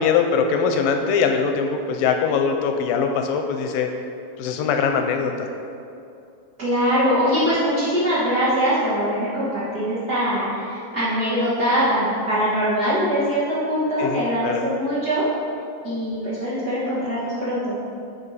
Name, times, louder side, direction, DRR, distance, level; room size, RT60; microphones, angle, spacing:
voice 1, 0.0-3.9 4.4-5.5 14.0-14.7, left 6 dB, 85° left, 5 dB, 2.2 m, -22 dB
voice 2, 6.6-15.3 15.8-17.8, equal, 75° right, -11 dB, 0.9 m, -22 dB
9.6 x 4.9 x 4.1 m, 2.6 s
omnidirectional pair, 4.2 m